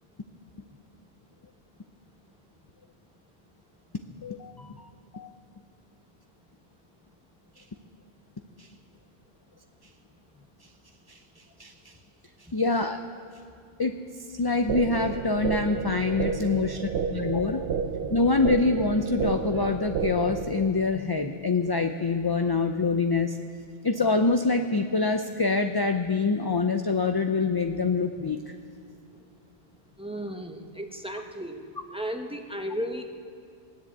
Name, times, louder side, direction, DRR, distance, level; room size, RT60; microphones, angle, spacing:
voice 1, 4.2-4.9 5.1-5.3 11.6-11.7 12.5-13.0 13.8-13.9 14.3-17.6 18.1-23.4 23.8-28.4, left 3 dB, 30° left, 6 dB, 0.5 m, -25 dB
sound 1, 14.7-20.7, right 6 dB, 80° right, 0.9 m, -31 dB
voice 2, 30.0-31.7 31.9-33.1, equal, 5° right, 3 dB, 1.0 m, -34 dB
17.0 x 10.5 x 8.1 m, 2.4 s
omnidirectional pair, 1.0 m